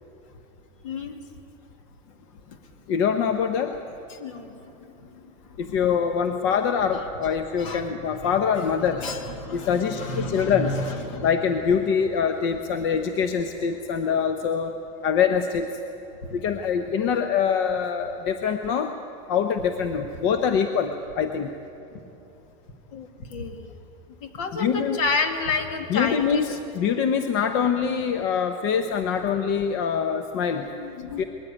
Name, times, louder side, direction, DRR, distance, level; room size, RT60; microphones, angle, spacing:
voice 1, 0.8-1.2 4.1-5.2 5.6-5.8 7.6-11.4 22.9-23.7 24.2-26.6 30.7-31.2, left 3 dB, 70° left, 6 dB, 2.2 m, -31 dB
voice 2, 2.9-3.8 5.6-9.0 9.5-10.8 11.2-14.7 15.0-15.7 16.3-18.9 19.3-21.5 24.5-25.0 25.9-26.4 26.7-30.7 31.2-31.3, left 7 dB, 50° left, 7 dB, 0.9 m, -24 dB
21.0 x 14.5 x 9.7 m, 2.9 s
supercardioid pair, 170°, 17 cm